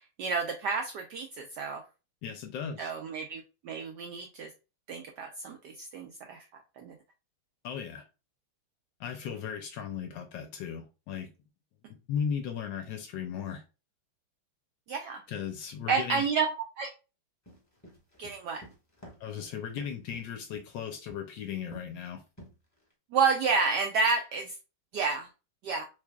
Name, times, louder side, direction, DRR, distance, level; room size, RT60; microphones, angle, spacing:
voice 1, 0.2-1.8 2.8-4.5 4.9-6.4 6.8-6.9 14.9-15.2 15.9-16.5 16.8-16.9 18.2-18.6 23.1-24.5 24.9-25.3 25.6-25.8, right 5 dB, 75° right, 0.9 m, -30 dB
voice 2, 2.2-2.9 7.6-8.0 9.0-11.3 11.9-13.6 15.3-16.3 19.2-22.2, left 7 dB, 70° left, 1.1 m, -36 dB
sound 1, 17.5-20.7 21.1-21.4 21.7-22.0 22.4-22.9, equal, 10° left, 1.2 m, -50 dB
3.6 x 3.2 x 2.2 m
omnidirectional pair, 2.3 m